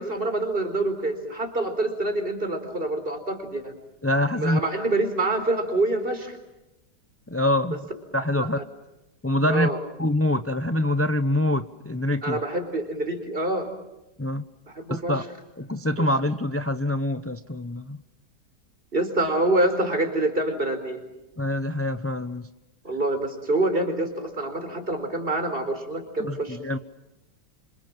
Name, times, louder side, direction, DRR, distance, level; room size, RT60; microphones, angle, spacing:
voice 1, 0.0-3.8 4.3-6.4 8.4-8.6 9.5-9.8 12.2-13.7 14.7-15.2 15.7-16.1 18.9-21.0 22.8-26.6, right 2 dB, 30° right, 7 dB, 4.5 m, -26 dB
voice 2, 4.0-4.6 7.3-7.8 8.1-8.6 9.2-9.7 10.0-12.4 14.2-14.4 14.9-15.2 15.6-18.0 21.4-22.5 26.2-26.8, left 1 dB, 20° left, 10 dB, 0.4 m, -25 dB
28.0 x 26.0 x 7.5 m, 0.98 s
omnidirectional pair, 1.8 m